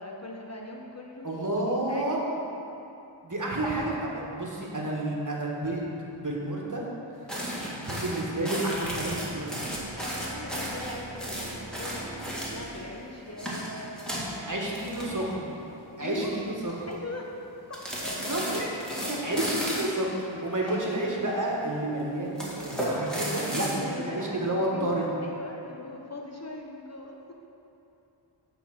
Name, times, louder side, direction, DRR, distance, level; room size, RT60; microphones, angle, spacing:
voice 1, 0.0-2.2 10.0-15.4 15.8-16.4 16.9-17.3 17.5-18.1 20.6-21.0 23.7-27.3, left 1 dB, 35° left, -1 dB, 0.7 m, -41 dB
voice 2, 1.2-2.2 3.2-6.8 7.5-9.7 14.5-15.5 16.0-16.7 18.3-18.7 19.1-25.1, right 1 dB, 40° right, -3 dB, 1.3 m, -30 dB
sound 1, 7.3-12.8 13.3-15.6 15.8-16.1 16.5-16.9 17.7-20.0 20.7-21.5 22.3-23.8, equal, ahead, 1.7 m, -34 dB
sound 2, 9.7-14.8, right 2 dB, 15° right, 1.2 m, -45 dB
8.2 x 3.9 x 5.8 m, 2.8 s
wide cardioid pair, 40°, 47 cm